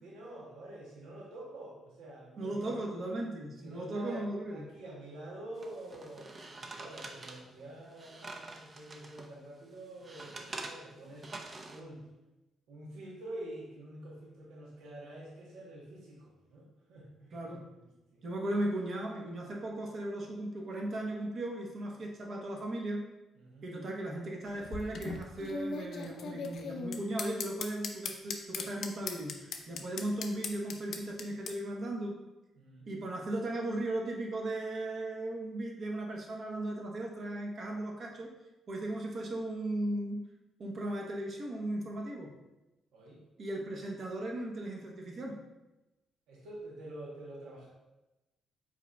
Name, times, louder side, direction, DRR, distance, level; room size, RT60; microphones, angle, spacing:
voice 1, 0.0-2.8 3.6-11.3 11.7-12.1 12.7-17.5 17.8-18.2 23.4-23.7 32.6-32.9 42.9-43.2 46.3-47.7, right 1 dB, 90° right, -3 dB, 0.9 m, -47 dB
voice 2, 2.4-4.6 17.3-17.6 18.2-23.1 23.6-32.1 32.9-38.3 38.7-40.3 40.6-42.3 43.4-45.4, right 1 dB, 50° right, 0 dB, 0.9 m, -37 dB
sound 1, 5.6-9.3 9.7-11.8, right 2 dB, 35° right, 0.5 m, -46 dB
sound 2, 24.5-31.5, left 4 dB, 65° left, 0.5 m, -39 dB
4.9 x 4.1 x 2.2 m, 1.0 s
cardioid pair, 90°, 0 cm